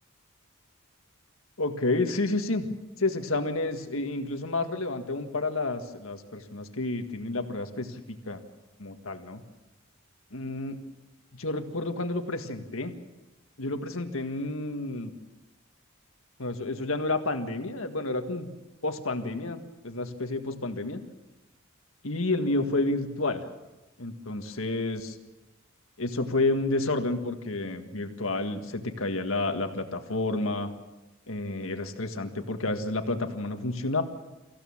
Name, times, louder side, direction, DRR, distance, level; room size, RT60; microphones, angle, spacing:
voice 1, 1.6-2.7 3.0-8.4 8.8-9.4 10.3-10.8 11.3-13.0 13.6-15.1 16.4-18.5 18.8-21.0 22.0-23.4 24.0-25.2 26.0-30.7 31.3-34.0, left 2 dB, 70° left, 6 dB, 1.8 m, -30 dB
24.5 x 15.5 x 7.3 m, 1.0 s
head